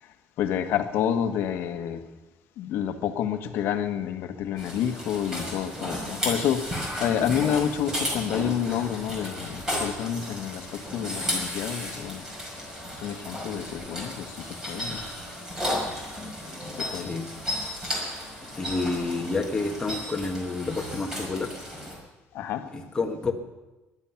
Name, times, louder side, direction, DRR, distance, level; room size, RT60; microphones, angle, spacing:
voice 1, 0.4-2.0 2.6-12.3 12.9-15.0 16.7-17.1 22.3-22.6, left 9 dB, 65° left, 7 dB, 1.4 m, -29 dB
sound 1, 4.6-22.0, equal, 15° right, 4.9 m, -34 dB
voice 2, 16.9-17.3 18.5-21.5 22.7-23.3, left 3 dB, 15° left, 2 dB, 1.6 m, -29 dB
19.5 x 11.5 x 5.9 m, 1.1 s
cardioid pair, 160°, 4 cm